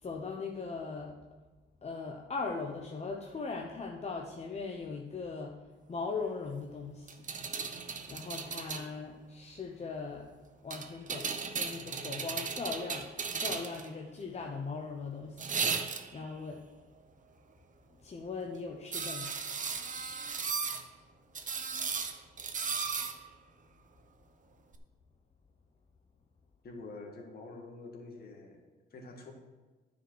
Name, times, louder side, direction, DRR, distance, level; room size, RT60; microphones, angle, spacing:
voice 1, 0.0-1.2 1.8-5.6 5.9-7.2 8.1-10.3 10.6-15.4 16.1-16.6 18.0-19.4, left 4 dB, 35° left, 1 dB, 0.9 m, -39 dB
sound 1, 7.1-8.9 10.7-13.9 15.4-16.3 18.9-20.8 21.3-23.2 24.7-24.8, right 5 dB, 40° right, 0.9 m, -36 dB
voice 2, 26.6-28.6 28.9-29.3, left 3 dB, 50° left, 2 dB, 1.9 m, -47 dB
9.8 x 5.3 x 6.3 m, 1.3 s
cardioid pair, 90°, 20 cm